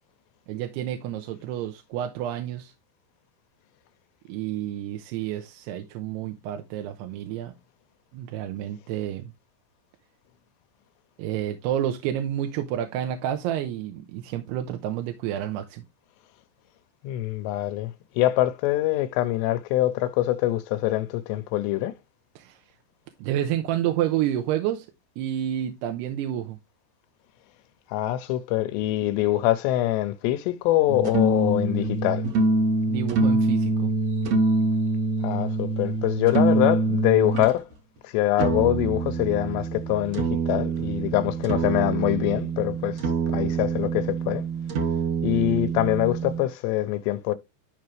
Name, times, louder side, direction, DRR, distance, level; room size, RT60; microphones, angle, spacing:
voice 1, 0.5-2.7 4.3-7.5 8.1-9.3 11.2-15.8 22.4-22.6 23.2-24.9 25.2-26.6 32.9-33.9, right 11 dB, 80° right, 2.8 m, -29 dB
voice 2, 17.0-21.9 27.9-32.2 35.2-37.6 38.0-43.0 43.3-44.5 45.2-47.3, left 15 dB, 85° left, 2.8 m, -24 dB
sound 1, 30.9-37.5 38.4-46.4, right 3 dB, 65° right, 1.7 m, -25 dB
12.5 x 5.2 x 3.2 m
omnidirectional pair, 5.0 m